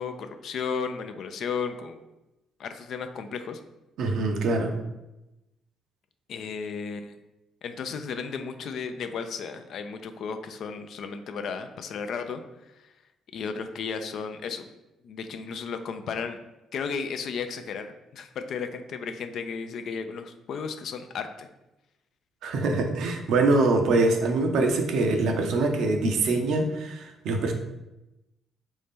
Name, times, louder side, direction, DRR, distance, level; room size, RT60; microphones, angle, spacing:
voice 1, 0.0-2.0 2.6-3.6 6.3-7.2 7.6-12.9 13.3-14.7 15.0-16.4 16.7-21.5, left 5 dB, 65° left, 8 dB, 0.3 m, -34 dB
voice 2, 4.0-4.7 22.4-27.5, right 2 dB, 70° right, 4 dB, 0.5 m, -24 dB
3.2 x 2.6 x 3.5 m, 0.97 s
hypercardioid pair, 55°, 0 cm